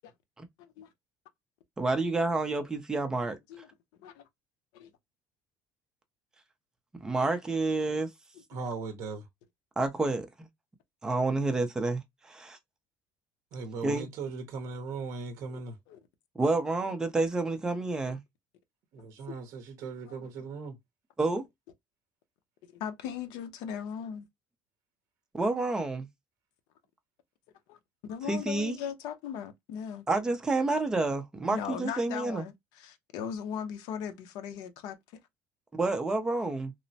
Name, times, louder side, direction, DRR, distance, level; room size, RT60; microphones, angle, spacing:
voice 1, 0.6-0.9 3.5-3.7 4.0-4.2 4.7-4.9 15.5-16.0 19.3-19.4 20.1-20.3 22.7-24.3 27.7-27.8 28.1-30.1 31.5-35.2, left 8 dB, 75° left, 0.6 m, -39 dB
voice 2, 1.8-3.4 7.0-8.1 9.8-10.5 11.0-12.6 13.8-14.1 16.4-18.2 21.2-21.4 25.3-26.1 28.3-28.8 30.1-32.4 35.8-36.7, right 3 dB, 10° right, 0.5 m, -29 dB
voice 3, 8.5-9.3 13.5-15.8 18.9-20.8, right 4 dB, 50° right, 0.6 m, -38 dB
3.0 x 2.0 x 2.6 m
cardioid pair, 160°, 7 cm